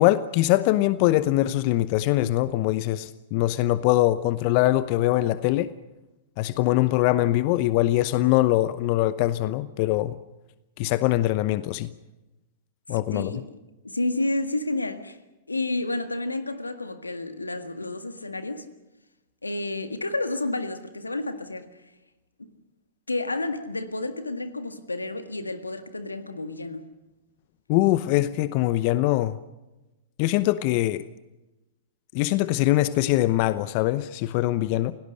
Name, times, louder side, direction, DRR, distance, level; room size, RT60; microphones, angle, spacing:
voice 1, 0.0-5.7 6.4-10.1 10.8-11.9 12.9-13.3 27.7-29.4 30.2-31.0 32.1-34.9, left 16 dB, 45° left, 15 dB, 0.8 m, -22 dB
voice 2, 13.1-13.5 13.8-15.2 15.5-18.7 19.4-21.7 23.1-26.9, left 2 dB, 90° left, 9 dB, 1.8 m, -30 dB
28.5 x 18.0 x 6.6 m, 1.0 s
figure-of-eight pair, 100°, 0 cm